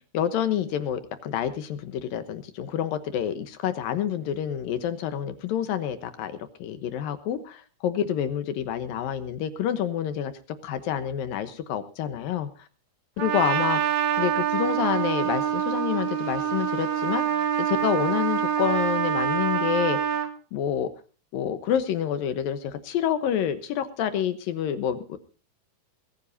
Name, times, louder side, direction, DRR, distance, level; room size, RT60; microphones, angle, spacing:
voice 1, 0.1-10.3 10.6-12.7 13.2-13.8 14.2-20.2 20.5-20.9 21.3-25.2, left 9 dB, 70° left, 11 dB, 2.7 m, -28 dB
Trumpet, 13.2-20.3, right 9 dB, 60° right, 2.5 m, -25 dB
22.0 x 15.0 x 2.7 m, 0.37 s
omnidirectional pair, 4.4 m